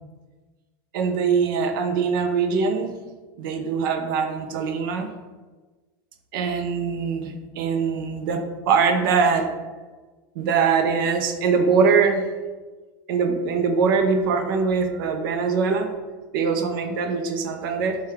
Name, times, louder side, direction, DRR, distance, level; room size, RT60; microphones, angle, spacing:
voice 1, 0.9-2.9 3.4-5.1 6.3-9.5 10.4-12.2 13.1-15.9 16.3-18.0, right 5 dB, 70° right, 6 dB, 0.5 m, -22 dB
4.6 x 2.3 x 3.4 m, 1.3 s
supercardioid pair, 175°, 12 cm